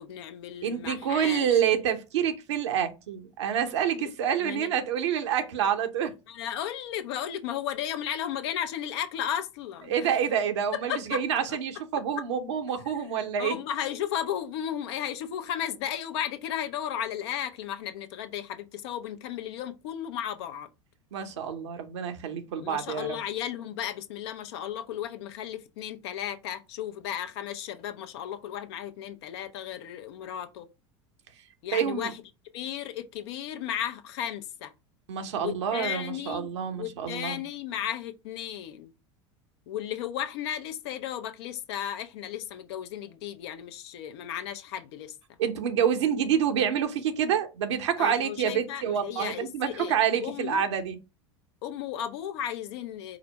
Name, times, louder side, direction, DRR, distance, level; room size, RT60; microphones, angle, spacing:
voice 1, 0.0-1.6 4.0-4.1 4.4-4.7 6.3-9.9 10.9-11.4 12.9-13.1 13.4-20.7 22.6-30.7 31.6-32.2 32.5-34.7 35.4-36.5 36.7-38.9 39.7-45.2 48.0-50.7 51.6-53.2, left 10 dB, 65° left, 0.7 m, -34 dB
voice 2, 0.6-6.1 9.9-13.6 21.1-23.2 31.7-32.1 35.1-37.4 45.4-51.0, right 8 dB, 75° right, 0.9 m, -27 dB
4.8 x 2.0 x 4.4 m
hypercardioid pair, 85°, 15 cm